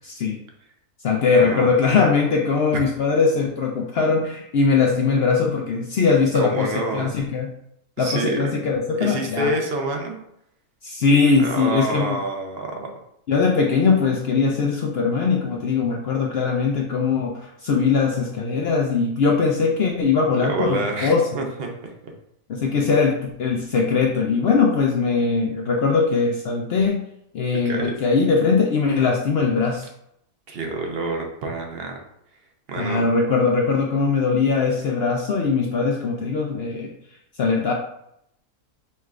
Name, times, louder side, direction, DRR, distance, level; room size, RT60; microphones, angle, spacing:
voice 1, 0.0-0.4 1.0-7.5 8.0-9.5 10.8-12.2 13.3-21.2 22.5-27.0 27.3-29.9 32.8-36.9 37.4-37.7, left 5 dB, 80° left, 0 dB, 0.5 m, -21 dB
voice 2, 1.4-1.7 2.7-2.8 6.3-7.1 8.0-8.5 9.0-10.2 11.4-13.0 20.4-22.1 27.6-28.0 30.5-32.0 32.7-33.1, right 2 dB, 55° right, 2 dB, 0.8 m, -27 dB
5.5 x 3.2 x 2.4 m, 0.76 s
omnidirectional pair, 1.6 m